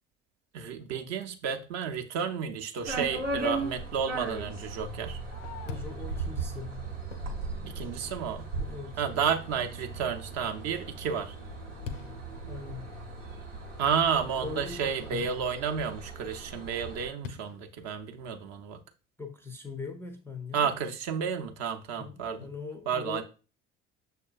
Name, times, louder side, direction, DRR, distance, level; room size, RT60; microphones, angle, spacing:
voice 1, 0.5-5.2 7.6-8.5 9.0-11.3 13.8-18.8 20.5-22.5 22.9-23.2, right 7 dB, 45° right, 0.6 m, -31 dB
sound 1, 2.9-17.1, right 3 dB, 85° right, 0.9 m, -38 dB
Fireworks, 5.0-8.3 8.9-9.0 9.5-9.9 10.3-15.2 17.2-18.6, left 6 dB, 80° left, 0.5 m, -47 dB
voice 2, 5.7-6.8 8.5-9.0 12.4-13.0 14.4-15.4 19.2-20.7 21.9-23.2, left 4 dB, 5° left, 0.4 m, -41 dB
6.4 x 2.2 x 2.3 m
figure-of-eight pair, 55°, 37 cm